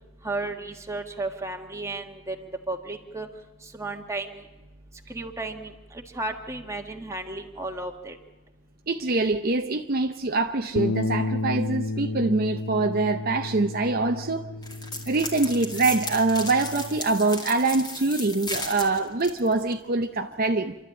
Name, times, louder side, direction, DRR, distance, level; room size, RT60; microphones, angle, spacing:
voice 1, 0.2-3.3 3.8-4.4 5.1-5.7 6.1-8.2, right 2 dB, 15° right, 1.6 m, -33 dB
voice 2, 8.9-14.5 15.1-20.8, right 3 dB, 45° right, 0.7 m, -24 dB
Bass guitar, 10.8-17.0, left 2 dB, 55° left, 0.7 m, -32 dB
sound 1, 14.6-19.7, left 2 dB, 20° left, 2.4 m, -35 dB
27.0 x 12.5 x 8.7 m
head